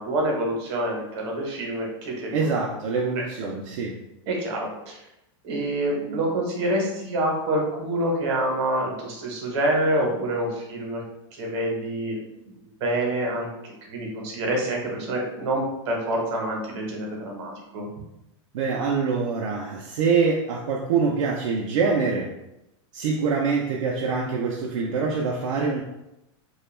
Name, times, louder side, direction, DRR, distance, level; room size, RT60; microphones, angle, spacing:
voice 1, 0.0-2.5 3.2-3.3 4.3-5.0 5.4-11.0 11.3-17.9, right 1 dB, 60° right, 0 dB, 0.8 m, -27 dB
voice 2, 2.3-3.9 18.5-22.3 22.9-25.8, right 5 dB, 80° right, -2 dB, 0.4 m, -25 dB
2.2 x 2.1 x 3.1 m, 0.89 s
supercardioid pair, 155°, 16 cm